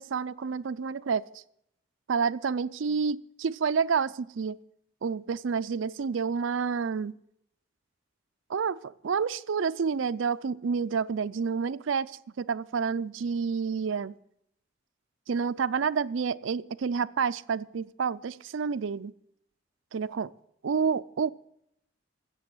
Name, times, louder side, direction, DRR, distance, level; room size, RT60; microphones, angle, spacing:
voice 1, 0.0-1.4 2.1-4.6 5.0-7.1 8.5-14.1 15.3-19.1 19.9-20.3 20.6-21.3, right 6 dB, 80° right, 0.4 m, -29 dB
15.5 x 6.9 x 7.8 m
head